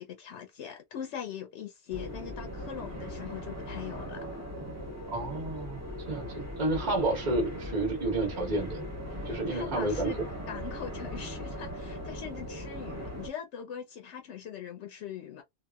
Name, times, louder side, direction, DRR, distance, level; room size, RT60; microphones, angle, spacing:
voice 1, 0.0-4.2 9.1-10.2 10.5-15.4, left 9 dB, 80° left, 0.9 m, -41 dB
sound 1, 1.9-13.3, equal, 15° right, 0.8 m, -39 dB
voice 2, 5.1-8.8 9.3-10.1, right 2 dB, 40° right, 1.1 m, -30 dB
2.8 x 2.4 x 2.2 m
omnidirectional pair, 1.2 m